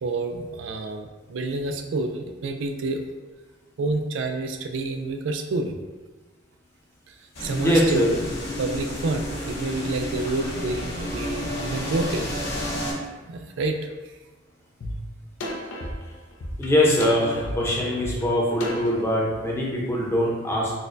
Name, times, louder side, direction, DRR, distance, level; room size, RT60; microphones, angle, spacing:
voice 1, 0.0-3.0 3.8-5.8 7.1-7.2 7.4-8.0 8.6-12.3 13.3-13.8, right 3 dB, 70° right, 6 dB, 0.3 m, -28 dB
sound 1, 7.3-12.9, left 1 dB, 65° left, 1.4 m, -31 dB
voice 2, 7.6-8.1 16.6-20.7, left 1 dB, 15° left, -4 dB, 0.7 m, -22 dB
sound 2, 14.8-14.9 15.4-19.0, equal, 80° left, 0.5 m, -32 dB
4.1 x 2.2 x 2.5 m, 1.3 s
head